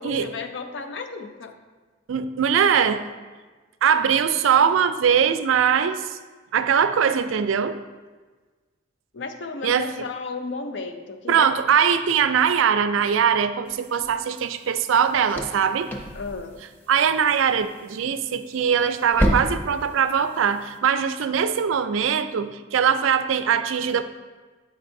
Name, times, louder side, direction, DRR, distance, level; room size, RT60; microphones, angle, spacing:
voice 1, 0.0-1.5 9.1-11.5 16.2-16.5, left 4 dB, 60° left, 7 dB, 0.5 m, -33 dB
voice 2, 2.1-3.1 3.8-6.2 6.5-7.8 9.6-9.9 11.3-15.9 16.9-24.0, right 7 dB, 80° right, 11 dB, 0.4 m, -21 dB
sound 1, 13.6-20.8, equal, 10° left, 0.5 m, -32 dB
7.3 x 5.3 x 2.6 m, 1.3 s
head